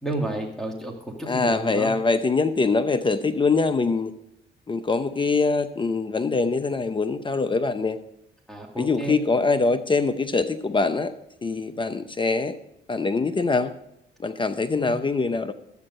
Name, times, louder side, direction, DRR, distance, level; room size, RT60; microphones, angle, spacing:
voice 1, 0.0-1.9 8.5-9.2 14.7-14.9, right 1 dB, ahead, -1 dB, 2.0 m, -31 dB
voice 2, 1.3-4.1 4.7-8.0 8.8-11.1 11.4-12.6 12.9-13.7 14.2-15.5, left 4 dB, 25° left, 10 dB, 0.7 m, -23 dB
12.0 x 8.7 x 5.3 m, 0.81 s
cardioid pair, 90°, 20 cm